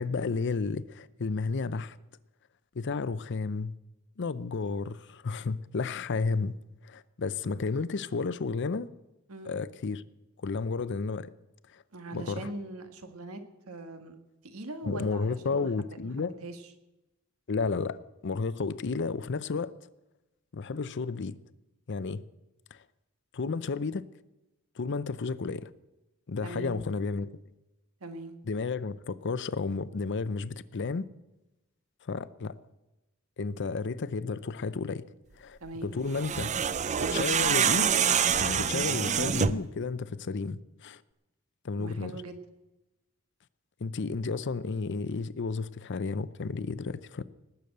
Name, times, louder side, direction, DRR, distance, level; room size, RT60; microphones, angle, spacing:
voice 1, 0.0-2.0 2.7-3.7 4.2-6.6 6.8-8.9 9.5-10.0 10.4-11.3 11.7-11.8 12.1-12.4 14.8-16.3 17.5-18.0 18.2-19.7 20.5-21.4 21.9-22.2 22.7-22.8 23.3-24.0 24.8-25.7 26.3-27.3 28.5-31.1 32.0-32.6 33.4-35.0 35.4-36.5 37.0-38.1 38.4-41.0 41.6-42.2 43.8-47.2, left 4 dB, 55° left, 16 dB, 0.6 m, -32 dB
voice 2, 11.9-13.4 13.7-14.2 14.4-16.6 26.4-26.8 28.0-28.3 35.6-35.9 41.8-42.4, right 2 dB, 85° right, 7 dB, 1.5 m, -41 dB
sound 1, 36.1-39.7, right 7 dB, 35° right, 0.5 m, -26 dB
19.0 x 7.0 x 7.9 m, 1.0 s
head